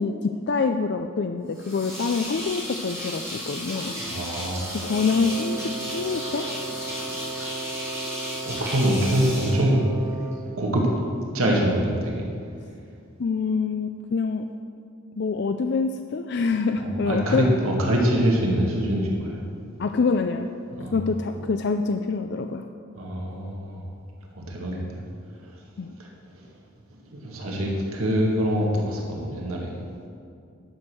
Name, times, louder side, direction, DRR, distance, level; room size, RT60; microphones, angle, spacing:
voice 1, 0.0-3.9 4.7-6.5 13.2-14.5 15.2-17.5 19.8-20.5 20.9-22.7 25.8-25.9, left 4 dB, 50° left, 7 dB, 0.4 m, -26 dB
sound 1, 1.5-10.3, equal, 15° right, 3.0 m, -34 dB
voice 2, 4.0-4.9 8.4-9.9 10.6-10.9 11.3-12.3 16.8-19.4 20.8-20.9 23.0-23.9 24.3-25.0 26.0-26.1 27.0-29.8, right 1 dB, 85° right, -1 dB, 1.9 m, -24 dB
Wind instrument woodwind instrument, 4.8-10.5, right 3 dB, 45° right, 2.0 m, -36 dB
11.5 x 6.3 x 7.6 m, 2.4 s
head